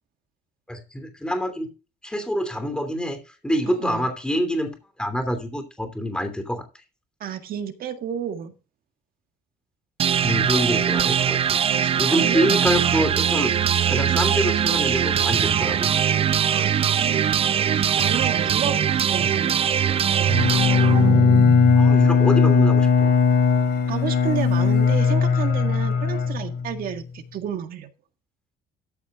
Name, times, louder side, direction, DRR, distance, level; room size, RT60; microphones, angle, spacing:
voice 1, 0.7-1.7 2.0-3.2 3.4-6.6 10.2-13.5 13.9-15.9 21.8-23.2, equal, 5° left, 3.1 m, -26 dB
voice 2, 3.7-4.1 7.2-8.5 11.6-12.6 13.0-13.2 16.5-17.3 17.7-20.5 23.9-27.9, right 9 dB, 60° right, 1.9 m, -32 dB
sound 1, 10.0-21.9, right 8 dB, 35° right, 0.4 m, -21 dB
Bowed string instrument, 20.3-26.9, left 5 dB, 65° left, 3.1 m, -18 dB
14.0 x 6.3 x 3.7 m
cardioid pair, 110°, 17 cm